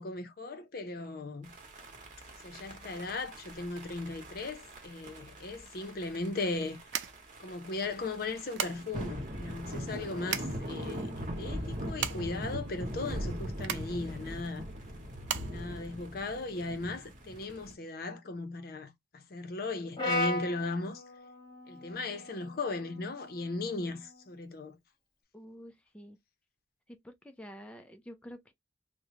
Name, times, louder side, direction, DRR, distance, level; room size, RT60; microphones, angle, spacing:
voice 1, 0.0-1.5 2.4-6.8 7.4-14.7 15.5-21.0 21.7-24.8, left 3 dB, 55° left, 0.6 m, -37 dB
sound 1, 1.4-17.7, equal, 45° right, 1.0 m, -41 dB
sound 2, 6.8-16.6, right 9 dB, 90° right, 0.5 m, -40 dB
Brass instrument, 20.0-24.2, left 2 dB, 25° left, 1.1 m, -37 dB
voice 2, 25.3-26.2 26.9-28.5, equal, 5° left, 0.4 m, -49 dB
3.1 x 2.1 x 3.6 m
head